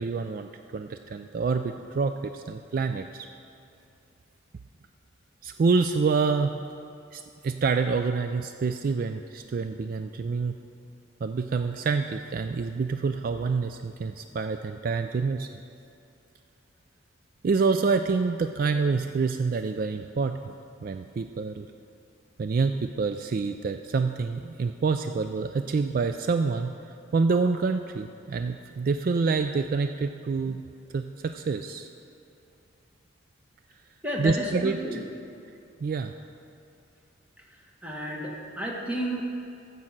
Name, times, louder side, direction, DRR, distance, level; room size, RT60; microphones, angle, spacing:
voice 1, 0.0-3.3 5.4-6.6 7.1-10.6 11.2-15.5 17.4-20.5 20.8-21.7 22.4-26.7 27.1-30.6 30.9-31.9 34.2-35.0 35.8-36.1, right 4 dB, 45° right, 8 dB, 0.3 m, -27 dB
voice 2, 34.0-35.0 37.8-39.2, equal, 10° right, -1 dB, 1.3 m, -31 dB
14.0 x 5.5 x 7.3 m, 2.6 s
head